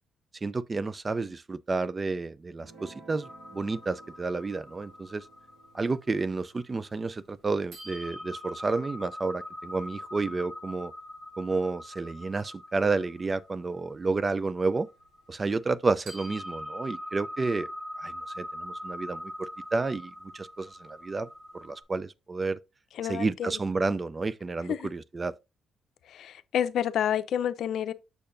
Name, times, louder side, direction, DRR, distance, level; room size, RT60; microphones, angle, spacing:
voice 1, 0.4-5.2 5.7-10.9 11.4-14.9 15.3-17.7 18.0-21.3 21.5-22.6 23.0-25.3, right 3 dB, 30° right, 0.5 m, -30 dB
Guitar, 2.6-9.2, right 4 dB, 60° right, 2.2 m, -56 dB
sound 1, 3.2-7.3 7.7-15.8 16.1-21.8, left 1 dB, 80° right, 3.1 m, -43 dB
voice 2, 22.9-23.6 24.7-24.9 26.1-27.9, left 9 dB, 70° left, 0.6 m, -29 dB
6.7 x 6.6 x 2.6 m
cardioid pair, 90°, 0 cm